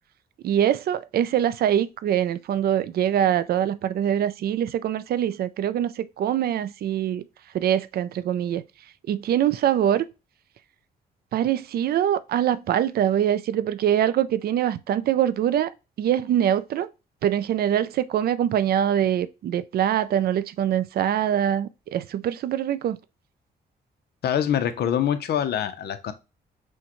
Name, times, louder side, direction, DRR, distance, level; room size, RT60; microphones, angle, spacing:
voice 1, 0.4-7.3 7.5-8.6 9.1-10.1 11.3-15.7 16.0-16.9 17.2-23.0, right 10 dB, 65° right, 0.4 m, -23 dB
voice 2, 24.2-26.1, left 9 dB, 70° left, 0.6 m, -24 dB
6.2 x 2.2 x 3.0 m
cardioid pair, 95°, 17 cm